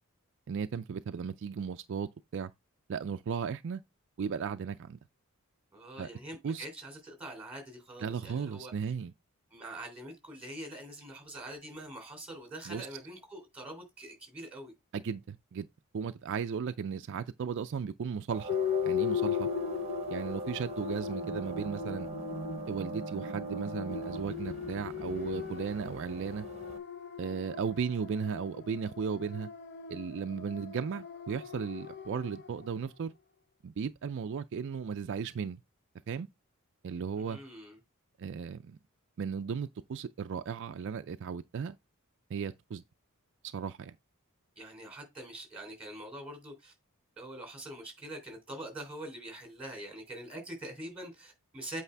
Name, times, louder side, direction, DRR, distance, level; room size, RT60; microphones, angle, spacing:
voice 1, 0.5-2.5 2.9-3.8 4.2-5.0 6.0-6.1 6.4-6.7 8.0-9.1 12.7-12.9 14.9-15.7 15.9-18.5 18.8-19.5 20.1-22.1 22.7-26.5 27.2-29.5 29.9-33.1 33.6-35.6 36.1-36.3 36.8-37.4 38.2-38.8 39.2-41.8 42.3-42.8 43.5-44.0, right 6 dB, 55° right, 0.4 m, -36 dB
voice 2, 5.7-8.7 9.5-14.7 37.2-37.8 44.6-46.7 47.2-51.8, right 1 dB, 5° right, 3.3 m, -44 dB
sound 1, 18.3-26.8, right 3 dB, 30° right, 0.9 m, -41 dB
sound 2, 18.5-32.7, left 8 dB, 50° left, 0.7 m, -38 dB
8.3 x 4.8 x 3.3 m
head